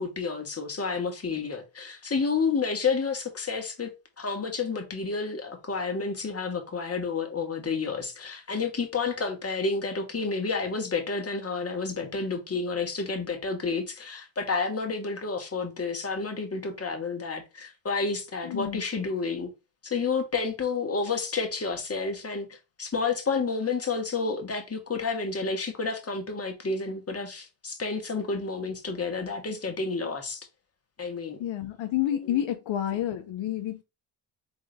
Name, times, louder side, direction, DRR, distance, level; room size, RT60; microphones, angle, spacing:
voice 1, 0.0-3.9 4.2-19.5 19.8-30.4 31.0-31.4 32.2-32.4, left 4 dB, 30° left, 1.5 m, -30 dB
voice 2, 18.4-18.8 31.4-33.8, left 11 dB, 70° left, 0.8 m, -29 dB
4.0 x 3.7 x 3.5 m
supercardioid pair, 60°, 49 cm